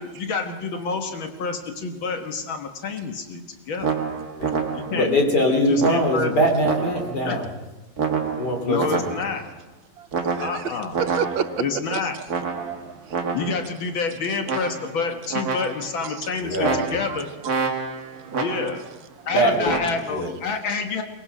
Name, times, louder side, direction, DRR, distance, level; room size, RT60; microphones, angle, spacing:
voice 1, 0.0-3.9 4.7-5.1 5.5-6.3 7.3-7.4 8.7-9.4 10.4-11.0 11.6-12.2 13.3-17.3 18.4-18.8 19.3-21.0, left 4 dB, 80° left, 5 dB, 2.3 m, -28 dB
sound 1, 3.8-5.1 5.8-7.3 8.0-9.5 10.1-11.7 12.3-13.7 14.5-15.0 15.3-16.0 16.6-18.9 19.7-20.0, right 5 dB, 50° right, 1.9 m, -28 dB
voice 2, 4.9-7.5 8.4-9.1 16.4-17.0 19.3-19.7 20.1-20.3, equal, 55° left, 3 dB, 3.8 m, -22 dB
voice 3, 10.4-11.7 11.9-12.0 12.6-13.2 16.0-16.1 17.1-17.2 18.1-18.4, right 8 dB, 80° right, 8 dB, 1.7 m, -30 dB
23.0 x 19.5 x 6.1 m, 1.1 s
omnidirectional pair, 2.1 m